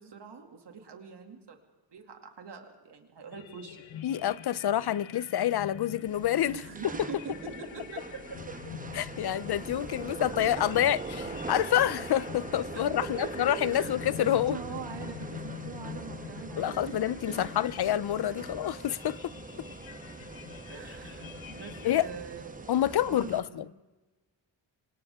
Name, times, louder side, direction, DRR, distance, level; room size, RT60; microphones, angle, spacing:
voice 1, 0.0-1.6 1.9-4.1 6.5-8.8 9.2-9.3 10.6-10.7 12.7-17.0 17.3-17.5 20.7-23.6, right 5 dB, 60° right, 2.5 m, -44 dB
sound 1, 3.3-22.0, left 9 dB, 85° left, 1.3 m, -45 dB
voice 2, 4.0-6.6 8.9-14.6 16.6-19.3 21.8-22.1 22.7-23.6, left 11 dB, 55° left, 0.6 m, -28 dB
sound 2, 6.1-23.4, right 3 dB, 15° right, 1.1 m, -42 dB
28.5 x 25.5 x 3.6 m
wide cardioid pair, 175°, 47 cm